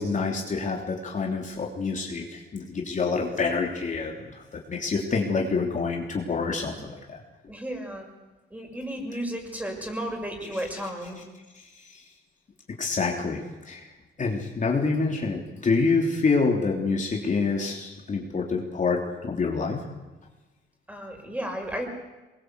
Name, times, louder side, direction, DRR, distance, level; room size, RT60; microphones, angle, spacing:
voice 1, 0.0-6.7 7.1-7.2 10.5-10.6 11.9-12.0 12.8-13.9 14.2-19.8, left 4 dB, 40° left, 0 dB, 3.4 m, -27 dB
voice 2, 7.5-8.1 8.5-11.2 20.9-21.9, equal, 5° right, 3 dB, 6.8 m, -33 dB
23.5 x 21.5 x 8.2 m, 1.2 s
cardioid pair, 90°, 20 cm